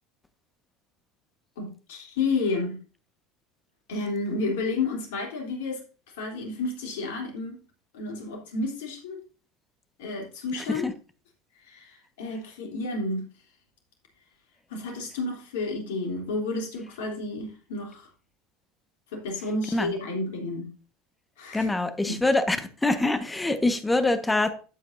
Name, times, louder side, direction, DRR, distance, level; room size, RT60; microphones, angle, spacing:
voice 1, 1.6-2.8 3.9-5.8 6.2-7.6 7.9-9.2 10.0-10.9 11.7-13.2 14.7-18.1 19.1-20.7 21.4-21.7 22.1-22.2, left 3 dB, 70° left, 1 dB, 3.4 m, -31 dB
voice 2, 21.5-24.5, left 2 dB, 10° left, 9 dB, 1.4 m, -24 dB
12.5 x 8.6 x 2.7 m, 0.36 s
figure-of-eight pair, 70°, 0 cm